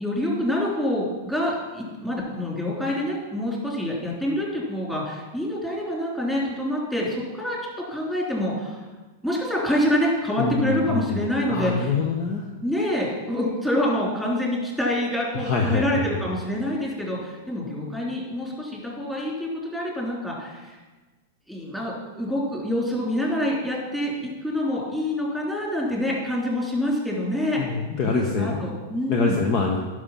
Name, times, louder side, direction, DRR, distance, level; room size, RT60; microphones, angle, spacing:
voice 1, 0.0-8.8 9.2-11.9 12.6-20.8 21.5-29.4, left 1 dB, 5° left, -4 dB, 3.4 m, -26 dB
voice 2, 10.4-12.4 15.3-16.0 27.6-28.6 29.1-29.8, left 4 dB, 45° left, 1 dB, 1.1 m, -25 dB
9.9 x 6.3 x 5.8 m, 1.2 s
hypercardioid pair, 105°, 0 cm